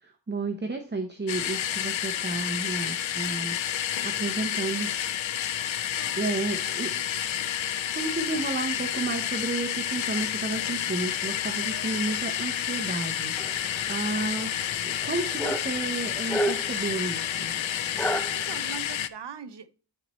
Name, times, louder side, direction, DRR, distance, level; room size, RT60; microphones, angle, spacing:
voice 1, 0.0-4.9 6.2-7.0 7.7-17.5, right 3 dB, 25° right, 0.8 m, -32 dB
sound 1, 1.3-19.1, left 10 dB, 80° left, 0.6 m, -30 dB
sound 2, 3.4-3.9 4.5-5.0 5.8-6.4 7.3-7.9 8.7-9.1 10.4-10.9 11.5-12.0 12.7-13.3, left 5 dB, 35° left, 0.8 m, -51 dB
sound 3, 13.4-18.8, equal, 5° left, 0.4 m, -34 dB
voice 2, 17.9-19.7, right 7 dB, 60° right, 0.8 m, -42 dB
12.0 x 4.3 x 3.0 m
wide cardioid pair, 75°, 46 cm